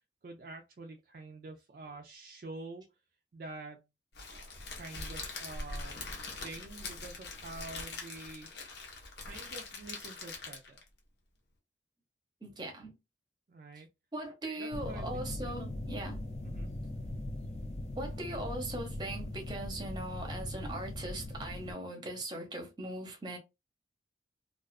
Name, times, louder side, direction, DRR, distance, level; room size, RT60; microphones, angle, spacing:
voice 1, 0.2-2.9 3.3-3.8 4.7-6.0 6.4-8.7 9.2-10.8 13.5-13.9 14.6-15.5 16.4-16.7, right 2 dB, 50° right, 0.3 m, -47 dB
Crackle, 4.1-10.9, left 3 dB, 70° left, 0.8 m, -43 dB
voice 2, 12.4-12.9 14.1-16.2 18.0-23.4, right 1 dB, 25° right, 0.7 m, -40 dB
sound 1, 14.7-21.7, left 1 dB, 40° left, 0.4 m, -40 dB
2.4 x 2.3 x 2.3 m
head